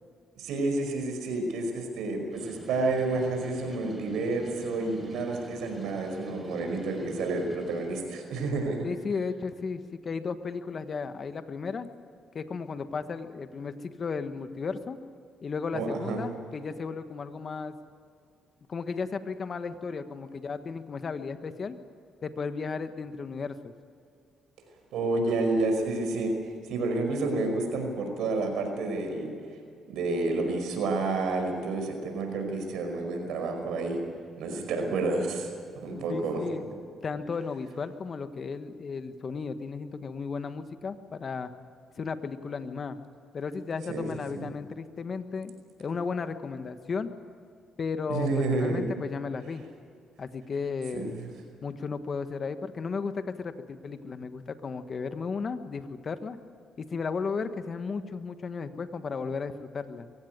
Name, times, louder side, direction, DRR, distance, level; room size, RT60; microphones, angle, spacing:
voice 1, 0.4-8.9 15.7-16.3 24.9-26.3 26.7-29.3 29.9-34.0 34.4-35.5 35.8-36.4 43.9-44.5 48.1-48.9 50.9-51.3, right 3 dB, 85° right, 4 dB, 5.2 m, -29 dB
sound 1, 2.3-8.0, right 2 dB, 30° right, 4.3 m, -48 dB
voice 2, 8.8-11.9 12.3-15.0 15.4-17.8 18.7-21.8 22.2-23.7 36.1-36.7 37.0-41.5 42.0-43.0 43.3-45.5 45.8-47.1 47.8-49.7 50.2-51.2 51.6-56.4 56.8-60.1, left 5 dB, 45° left, 9 dB, 1.4 m, -34 dB
23.5 x 16.0 x 9.5 m, 2.3 s
cardioid pair, 90°, 0 cm